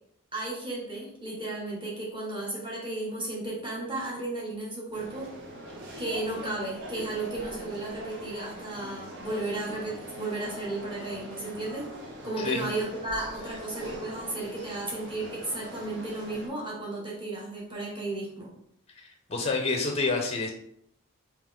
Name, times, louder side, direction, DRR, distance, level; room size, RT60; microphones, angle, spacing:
voice 1, 0.3-5.3 6.0-11.9 12.2-18.5, right 2 dB, 20° right, -4 dB, 1.2 m, -34 dB
sound 1, 4.9-16.5, equal, 55° right, 0.8 m, -42 dB
voice 2, 18.9-20.5, left 3 dB, 25° left, 2 dB, 0.5 m, -29 dB
3.5 x 2.8 x 3.6 m, 0.71 s
head